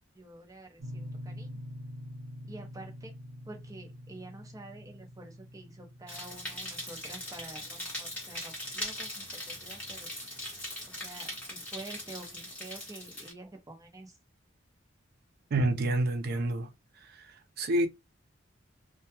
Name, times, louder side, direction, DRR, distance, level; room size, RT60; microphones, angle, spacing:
voice 1, 0.1-1.6 2.4-3.1 3.5-10.1 10.9-14.2, right 2 dB, 15° right, 0.7 m, -48 dB
sound 1, 0.8-9.5, equal, 80° right, 0.8 m, -46 dB
sound 2, 6.1-13.3, left 1 dB, 5° left, 1.0 m, -40 dB
voice 2, 15.5-16.7 17.0-17.9, right 1 dB, 55° right, 0.4 m, -29 dB
2.2 x 2.2 x 2.8 m
head